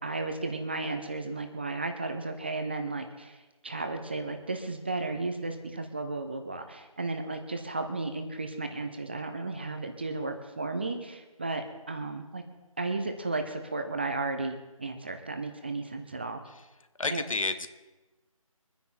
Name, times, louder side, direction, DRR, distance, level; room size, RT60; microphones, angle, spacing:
voice 1, 0.0-12.4 12.8-16.4 17.1-17.2, right 3 dB, 20° right, 7 dB, 0.7 m, -34 dB
voice 2, 17.0-17.7, left 3 dB, 65° left, 10 dB, 1.4 m, -30 dB
24.0 x 9.9 x 4.3 m, 1.1 s
figure-of-eight pair, 170°, 18 cm